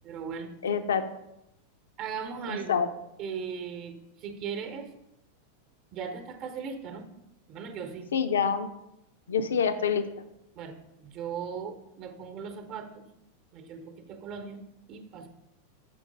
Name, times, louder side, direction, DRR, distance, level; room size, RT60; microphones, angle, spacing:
voice 1, 0.0-0.5 2.0-2.8 3.2-4.9 5.9-7.1 7.5-8.1 9.6-9.7 10.6-13.0 13.5-14.6 14.9-15.3, right 6 dB, 40° right, 7 dB, 0.9 m, -38 dB
voice 2, 0.6-1.0 2.5-2.9 8.1-8.7 9.3-10.1, left 6 dB, 65° left, 10 dB, 0.6 m, -26 dB
6.9 x 5.2 x 5.1 m, 0.86 s
figure-of-eight pair, 90°, 0 cm